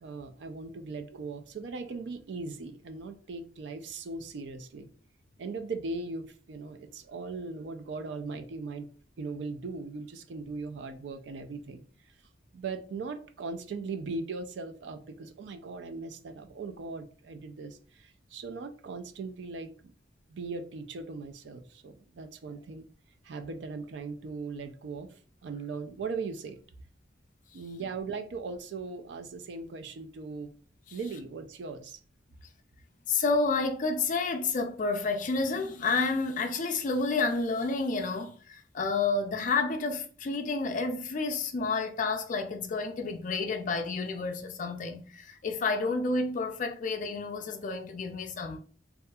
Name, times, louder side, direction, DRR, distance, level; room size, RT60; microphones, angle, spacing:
voice 1, 0.0-4.9 5.4-8.9 9.2-11.8 12.5-19.9 20.3-22.9 23.2-26.6 27.5-30.5 30.9-32.0, right 4 dB, 70° right, 0.4 m, -39 dB
voice 2, 33.1-48.6, left 3 dB, 45° left, 0.4 m, -30 dB
2.7 x 2.4 x 2.2 m
head